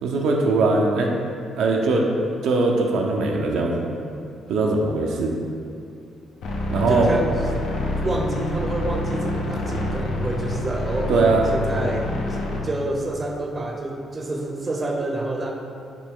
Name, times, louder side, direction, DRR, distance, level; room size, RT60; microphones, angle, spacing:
voice 1, 0.0-1.1 1.6-2.0 2.4-3.9 4.5-5.3 6.7-7.1 11.1-11.4, right 3 dB, 80° right, 0 dB, 0.4 m, -20 dB
sound 1, 6.4-12.6, left 1 dB, 75° left, 0.6 m, -27 dB
voice 2, 6.9-7.3 8.0-12.4 12.6-15.5, right 2 dB, 30° right, 0 dB, 0.5 m, -28 dB
5.8 x 2.2 x 3.6 m, 2.5 s
cardioid pair, 90°, 0 cm